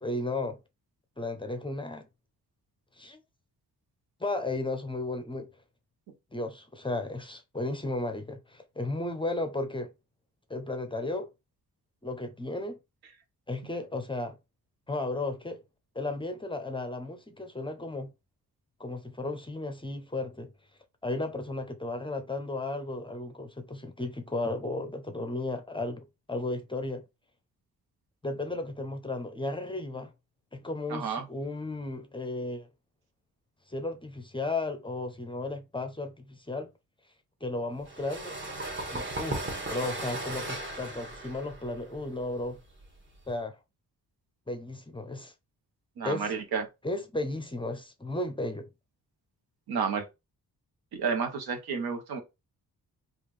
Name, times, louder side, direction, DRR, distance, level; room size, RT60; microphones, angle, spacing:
voice 1, 0.0-0.6 1.2-2.1 3.0-3.2 4.2-5.5 6.3-9.9 10.5-11.3 12.0-12.8 13.5-14.4 14.9-15.6 16.0-18.1 18.8-20.5 21.0-27.0 28.2-30.1 30.5-32.7 33.7-36.7 37.4-38.3 38.9-42.6 43.3-43.6 44.5-45.3 46.0-46.3 46.8-48.7, left 2 dB, 15° left, 0.5 m, -34 dB
voice 2, 30.9-31.2 46.0-46.7 49.7-50.1 50.9-52.2, right 6 dB, 85° right, 0.9 m, -31 dB
sound 1, 37.8-43.3, right 2 dB, 30° right, 1.1 m, -37 dB
3.6 x 2.4 x 3.1 m
cardioid pair, 95°, 37 cm